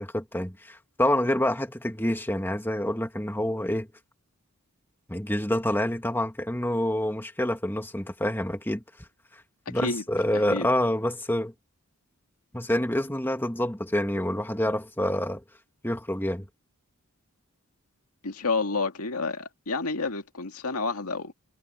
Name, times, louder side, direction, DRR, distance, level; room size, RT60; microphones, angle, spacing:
voice 1, 0.0-3.9 5.1-8.8 9.7-11.5 12.5-15.4 15.8-16.5, left 1 dB, 10° left, 1.9 m, -27 dB
voice 2, 10.3-10.7 18.2-21.3, left 3 dB, 85° left, 2.1 m, -29 dB
head